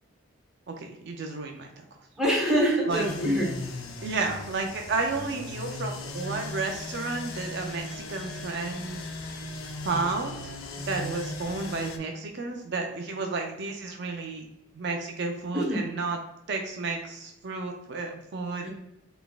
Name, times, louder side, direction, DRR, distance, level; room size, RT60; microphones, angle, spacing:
voice 1, 0.7-1.7 2.9-3.1 4.0-9.1 9.8-14.5 14.7-16.2 16.5-18.7, right 3 dB, 55° right, 3 dB, 0.4 m, -32 dB
voice 2, 2.2-3.6 15.5-15.9 18.6-18.7, right 1 dB, ahead, -4 dB, 1.0 m, -25 dB
sound 1, 2.9-12.0, left 2 dB, 80° left, 0.5 m, -38 dB
4.0 x 3.4 x 2.3 m, 0.88 s
head